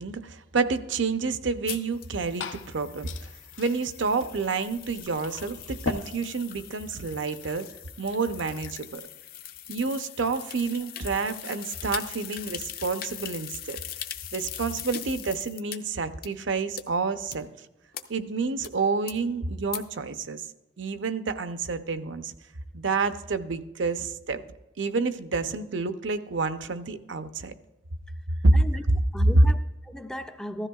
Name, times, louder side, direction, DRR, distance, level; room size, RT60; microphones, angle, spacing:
voice 1, 0.0-3.1 3.6-7.7 8.0-9.0 9.7-13.8 14.3-17.5 18.1-20.5 20.8-22.3 22.7-24.4 24.8-27.5 28.4-28.5, right 4 dB, 75° right, 0.6 m, -29 dB
sound 1, 1.7-15.8 16.2-16.3 16.8-16.9 17.3-17.4 17.9-18.0 18.6-18.7 19.1-19.2 19.7-19.8, left 11 dB, 50° left, 0.6 m, -41 dB
Glass / Fill (with liquid), 1.9-9.0, left 3 dB, 80° left, 0.8 m, -41 dB
voice 2, 28.5-28.8 29.1-30.7, equal, 5° left, 0.3 m, -37 dB
15.0 x 13.0 x 2.3 m
head